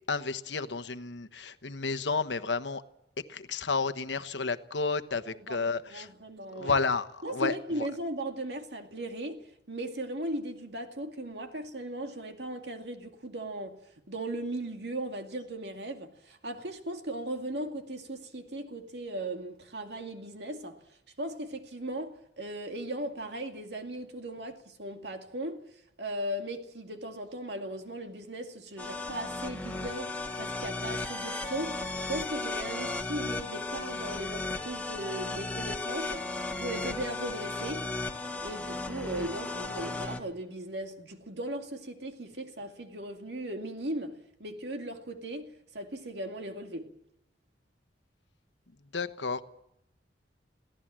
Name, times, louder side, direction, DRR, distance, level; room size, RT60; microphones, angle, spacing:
voice 1, 0.1-2.8 3.3-6.1 6.5-7.5 48.9-49.4, left 4 dB, 85° left, 1.2 m, -31 dB
voice 2, 5.3-6.8 7.2-13.8 14.1-20.8 21.2-25.6 26.0-36.2 36.6-37.9 38.4-44.1 44.4-46.9, right 1 dB, 70° right, 2.3 m, -37 dB
sound 1, 28.8-40.2, left 2 dB, 10° left, 1.6 m, -35 dB
23.0 x 16.5 x 7.6 m
head